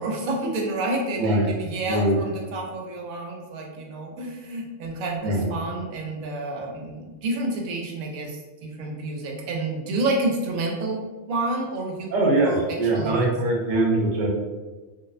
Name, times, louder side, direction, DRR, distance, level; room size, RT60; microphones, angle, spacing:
voice 1, 0.0-13.3, right 2 dB, 90° right, 0 dB, 1.0 m, -29 dB
voice 2, 1.1-1.5 1.9-2.2 5.2-5.5 12.1-14.3, right 2 dB, 50° right, -3 dB, 0.6 m, -22 dB
2.6 x 2.0 x 2.4 m, 1.3 s
omnidirectional pair, 1.4 m